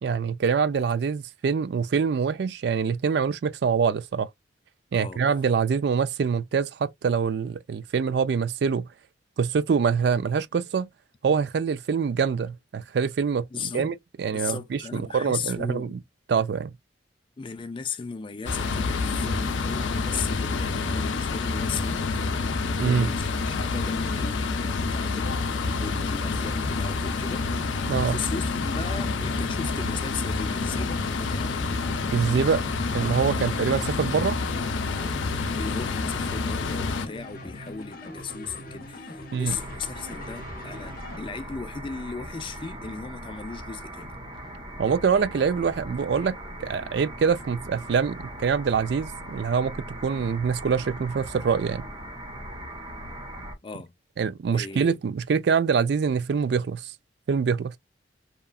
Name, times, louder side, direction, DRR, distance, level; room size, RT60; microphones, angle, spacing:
voice 1, 0.0-4.3 4.9-8.9 9.4-10.9 11.2-16.0 16.3-16.7 22.8-23.1 27.9-28.2 32.1-32.6 32.9-34.4 39.3-39.6 44.8-49.8 50.0-51.9 54.2-56.9 57.3-57.8, right 6 dB, 60° right, 0.3 m, -25 dB
voice 2, 13.5-13.9 14.3-16.0 17.4-31.6 33.4-33.6 35.3-44.1 53.6-53.9 54.5-55.0, left 5 dB, 25° left, 0.4 m, -37 dB
sound 1, 18.5-37.1, left 4 dB, 85° left, 0.5 m, -28 dB
sound 2, 26.4-41.2, left 1 dB, 50° left, 0.8 m, -41 dB
sound 3, 39.5-53.6, right 1 dB, 25° right, 0.9 m, -39 dB
2.9 x 2.3 x 2.3 m
head